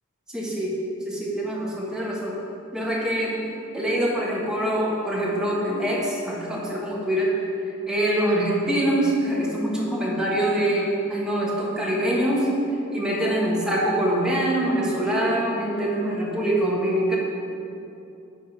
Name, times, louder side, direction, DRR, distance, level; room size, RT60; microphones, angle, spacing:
voice 1, 0.3-0.8 1.0-2.4 2.7-3.4 3.7-7.3 7.9-12.5 12.9-17.2, right 1 dB, 5° right, -5 dB, 1.4 m, -24 dB
10.0 x 3.8 x 5.9 m, 2.7 s
head